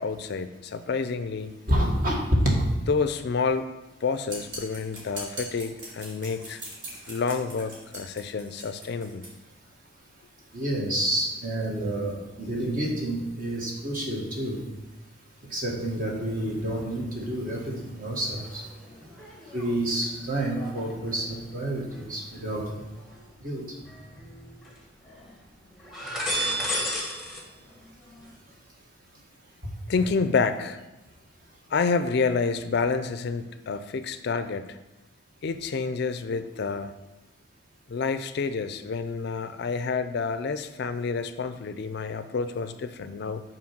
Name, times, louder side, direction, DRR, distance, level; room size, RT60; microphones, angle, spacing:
voice 1, 0.0-1.6 2.9-3.7 4.0-6.6 7.1-9.2 20.2-20.3 29.9-30.8 31.7-34.8 35.4-36.9 37.9-43.4, left 4 dB, 55° left, 10 dB, 0.4 m, -28 dB
voice 2, 1.7-2.6 10.5-14.6 15.5-18.6 19.5-22.7 23.4-23.6, right 1 dB, 40° right, -2 dB, 1.5 m, -28 dB
sound 1, 4.3-9.3, right 1 dB, 65° right, 2.5 m, -41 dB
sound 2, 16.4-17.3 17.6-23.3 23.8-24.8 25.0-25.3 25.7-27.4 27.7-28.3, equal, ahead, 1.1 m, -36 dB
6.2 x 4.4 x 5.9 m, 1.0 s
head